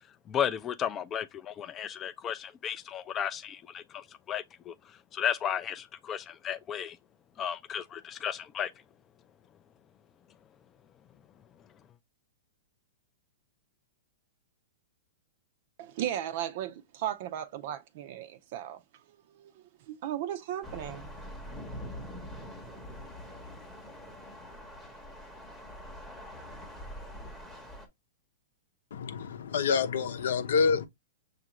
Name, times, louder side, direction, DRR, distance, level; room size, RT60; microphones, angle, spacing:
voice 1, 0.3-4.8 5.1-7.0 7.4-8.7, left 9 dB, 20° left, 0.4 m, -34 dB
voice 2, 15.8-18.8 19.3-21.1, right 11 dB, 45° right, 0.5 m, -36 dB
sound 1, 20.6-27.9, equal, ahead, 0.8 m, -44 dB
voice 3, 28.9-30.9, left 5 dB, 75° left, 0.7 m, -27 dB
6.5 x 2.5 x 2.9 m
hypercardioid pair, 165°, 0 cm